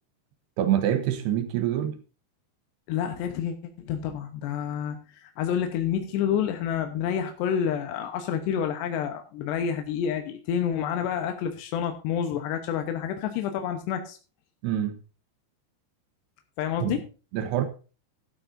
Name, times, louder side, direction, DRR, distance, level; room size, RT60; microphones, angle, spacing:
voice 1, 0.6-2.0 14.6-15.0 16.8-17.0 17.3-17.7, right 11 dB, 80° right, 3.2 m, -25 dB
voice 2, 2.9-3.5 3.9-14.2 16.6-17.0, left 8 dB, 85° left, 3.3 m, -28 dB
12.5 x 12.0 x 2.7 m
omnidirectional pair, 4.8 m